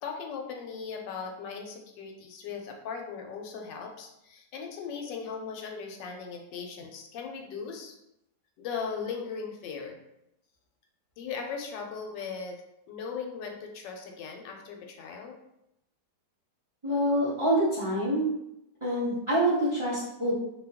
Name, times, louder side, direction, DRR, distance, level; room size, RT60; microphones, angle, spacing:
voice 1, 0.0-8.0 8.6-10.0 11.2-12.6 12.9-15.4, left 5 dB, 80° left, 2 dB, 1.2 m, -38 dB
voice 2, 16.8-18.3 18.8-20.3, right 1 dB, 35° right, -9 dB, 0.4 m, -26 dB
2.8 x 2.2 x 3.4 m, 0.83 s
omnidirectional pair, 1.9 m